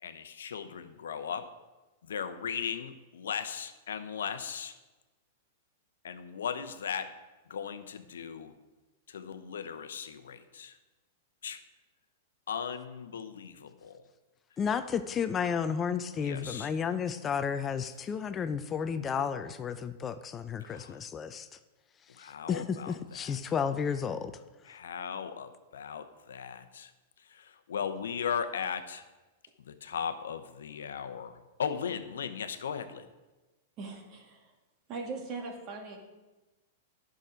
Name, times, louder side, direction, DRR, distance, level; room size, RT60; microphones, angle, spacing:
voice 1, 0.0-1.5 2.0-4.7 6.0-7.1 7.5-8.5 9.1-10.8 11.4-11.6 12.5-14.0 16.2-16.7 20.6-21.0 22.1-23.4 24.7-26.9 27.2-29.0 29.6-33.1, left 7 dB, 80° left, 9 dB, 0.8 m, -37 dB
voice 2, 14.6-21.5 22.2-24.3, left 7 dB, 25° left, 11 dB, 0.5 m, -32 dB
voice 3, 33.8-34.5 34.9-36.0, right 3 dB, 40° right, 1 dB, 2.1 m, -40 dB
10.5 x 6.2 x 5.1 m, 1.2 s
hypercardioid pair, 120°, 0 cm